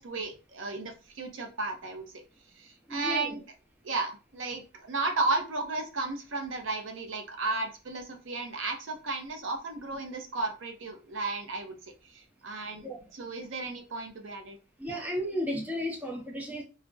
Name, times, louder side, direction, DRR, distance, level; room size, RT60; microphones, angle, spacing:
voice 1, 0.0-2.1 2.6-3.4 3.8-11.8 12.1-14.6 14.9-15.0, right 3 dB, 80° right, 0.6 m, -34 dB
voice 2, 2.9-3.4 12.8-13.0 14.8-16.6, equal, 10° right, 0.6 m, -33 dB
2.3 x 2.1 x 3.7 m
head